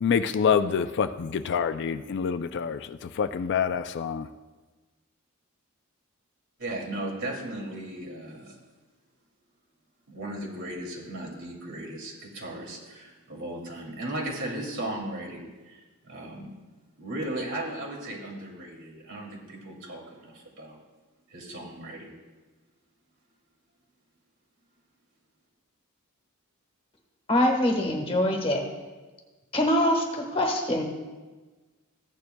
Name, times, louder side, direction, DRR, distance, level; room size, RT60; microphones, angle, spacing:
voice 1, 0.0-2.8 3.2-4.3, left 6 dB, 55° left, 11 dB, 0.4 m, -26 dB
voice 2, 6.6-8.6 10.1-16.5 17.0-20.8 21.3-22.1, right 1 dB, 60° right, -2 dB, 2.6 m, -36 dB
voice 3, 27.3-28.6 29.5-30.8, left 1 dB, 25° left, 2 dB, 1.3 m, -24 dB
15.0 x 9.5 x 2.3 m, 1.3 s
head